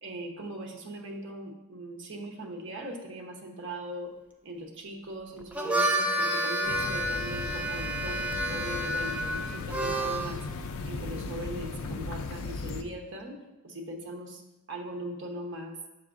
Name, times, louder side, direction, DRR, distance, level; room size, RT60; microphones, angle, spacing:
voice 1, 0.0-4.1 4.4-10.4 10.8-13.4 13.6-14.4 14.7-15.8, right 1 dB, 55° right, 1 dB, 0.9 m, -40 dB
Harmonica, 5.4-10.4, right 1 dB, 5° right, 0.4 m, -30 dB
sound 1, 6.6-12.8, left 3 dB, 65° left, 0.4 m, -37 dB
7.4 x 5.9 x 2.5 m, 1.0 s
head